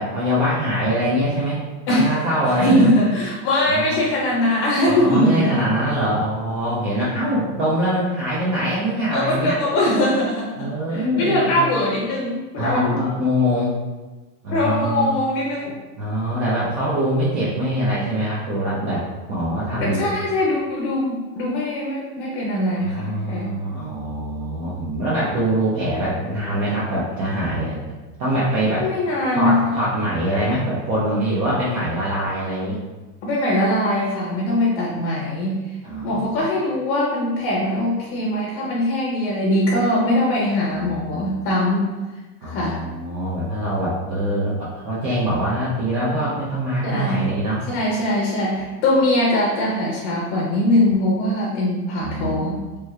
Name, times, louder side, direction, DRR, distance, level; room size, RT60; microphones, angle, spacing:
voice 1, 0.0-1.6 1.9-2.9 3.7-4.0 4.9-9.6 10.6-11.6 12.6-13.7 14.4-15.1 16.0-20.1 22.8-27.8 28.2-28.9 29.3-32.8 35.8-36.4 40.8-41.2 42.4-47.6 52.0-52.4, equal, 35° right, -7 dB, 0.5 m, -23 dB
voice 2, 2.5-5.6 9.1-13.0 14.5-15.8 19.8-23.5 28.8-29.7 33.2-35.7 36.0-42.0 42.4-42.8 46.8-47.3 47.7-52.6, left 1 dB, 45° left, -3 dB, 0.6 m, -21 dB
3.2 x 3.0 x 2.3 m, 1.2 s
supercardioid pair, 150°, 46 cm